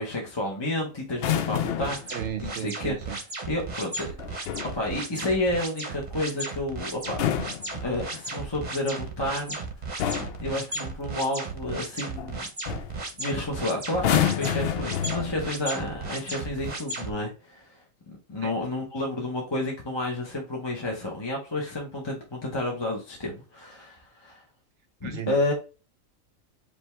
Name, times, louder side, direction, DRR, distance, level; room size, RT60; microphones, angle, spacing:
voice 1, 0.0-2.1 2.4-3.0 3.5-4.2 4.7-7.2 7.8-9.6 10.1-12.4 13.2-17.8 18.3-24.4 25.0-25.5, left 2 dB, 20° left, 1.0 m, -30 dB
sound 1, 1.1-2.1 4.2-4.8 7.0-8.3 9.4-9.6 10.0-10.5 12.2-12.4 12.7-13.0 13.9-15.6 16.5-16.8, left 9 dB, 60° left, 0.6 m, -28 dB
sound 2, 1.8-17.1, right 3 dB, 35° right, 1.0 m, -35 dB
voice 2, 2.1-3.2 18.4-18.6 25.0-25.4, right 10 dB, 65° right, 0.9 m, -35 dB
5.2 x 2.9 x 3.3 m
omnidirectional pair, 1.4 m